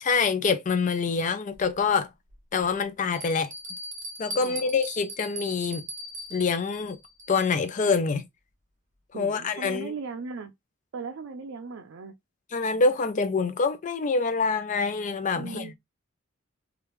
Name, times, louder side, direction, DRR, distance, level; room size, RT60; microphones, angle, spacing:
voice 1, 0.0-2.1 2.5-3.5 4.2-5.8 6.3-7.0 7.3-8.3 9.1-9.9 12.5-15.7, left 4 dB, 40° left, 0.4 m, -26 dB
Bell, 1.5-1.6 2.3-2.4 3.1-7.7, right 1 dB, 40° right, 1.1 m, -39 dB
voice 2, 9.1-10.5 10.9-12.1 15.3-15.7, right 4 dB, 80° right, 0.4 m, -38 dB
3.2 x 2.4 x 3.0 m
head